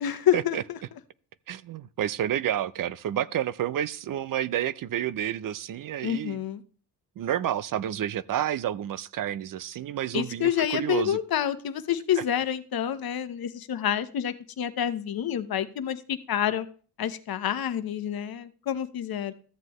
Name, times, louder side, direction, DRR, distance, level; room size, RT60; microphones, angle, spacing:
voice 1, 0.0-0.8 6.0-6.6 10.1-16.7 17.0-19.3, left 10 dB, 60° left, 1.0 m, -28 dB
voice 2, 1.5-6.4 7.2-11.2 12.2-12.3, right 11 dB, 55° right, 0.5 m, -30 dB
13.5 x 7.6 x 3.1 m
cardioid pair, 65°, 41 cm